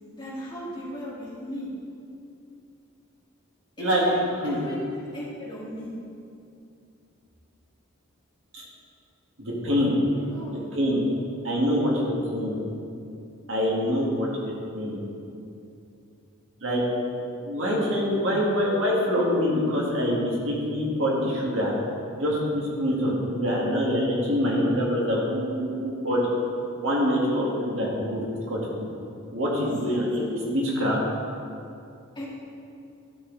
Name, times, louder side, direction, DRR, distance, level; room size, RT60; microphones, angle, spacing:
voice 1, 0.1-1.7 3.8-4.2 4.4-5.9 10.1-10.6 29.6-30.3 32.1-32.2, equal, 20° left, -8 dB, 2.2 m, -37 dB
voice 2, 9.4-9.9 10.7-11.0 11.4-12.6 13.5-15.0 16.6-16.8 17.4-21.7 22.2-26.3 26.8-28.9 29.3-31.0, equal, 65° right, -4 dB, 2.0 m, -25 dB
13.0 x 6.9 x 4.0 m, 2.6 s
head